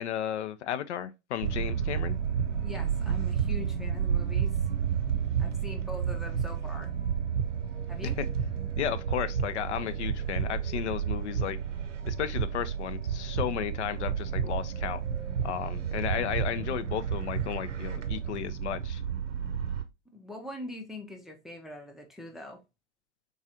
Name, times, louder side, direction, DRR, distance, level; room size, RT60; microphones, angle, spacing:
voice 1, 0.0-2.2 8.2-8.3 8.8-11.6 12.0-15.0 15.4-19.0, left 10 dB, 70° left, 0.6 m, -34 dB
sound 1, 1.4-19.8, right 8 dB, 85° right, 0.7 m, -31 dB
voice 2, 2.6-4.6 5.4-6.9 7.9-8.2 20.1-22.6, left 1 dB, ahead, 0.4 m, -42 dB
3.7 x 3.1 x 2.6 m
hypercardioid pair, 100°, 36 cm